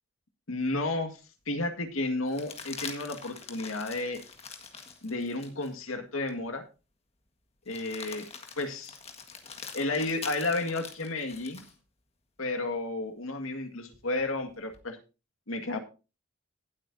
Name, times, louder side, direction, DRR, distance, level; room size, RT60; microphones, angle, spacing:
voice 1, 0.5-1.2 1.5-4.2 5.0-6.6 7.7-8.3 8.6-9.0 9.7-11.6 12.4-15.0 15.5-15.8, left 2 dB, 90° left, 6 dB, 2.0 m, -32 dB
sound 1, 0.7-0.8 2.3-5.7 6.3-6.4 7.7-11.8 13.9-14.8, left 5 dB, 30° left, 1.6 m, -44 dB
18.0 x 8.4 x 2.7 m, 0.31 s
head